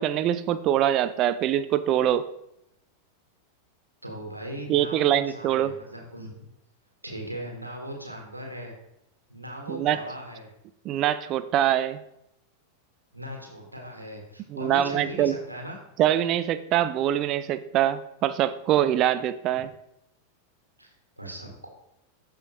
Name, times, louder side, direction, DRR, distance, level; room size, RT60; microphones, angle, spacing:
voice 1, 0.0-2.2 4.7-5.7 9.7-10.0 10.8-12.0 14.5-15.3 16.0-19.7, right 11 dB, 35° right, 13 dB, 0.4 m, -24 dB
voice 2, 4.0-6.3 7.0-8.7 9.3-10.5 13.1-15.8 19.5-19.6 20.8-21.7, equal, 85° right, 0 dB, 1.5 m, -38 dB
13.5 x 4.9 x 3.0 m, 0.81 s
figure-of-eight pair, 90°, 0 cm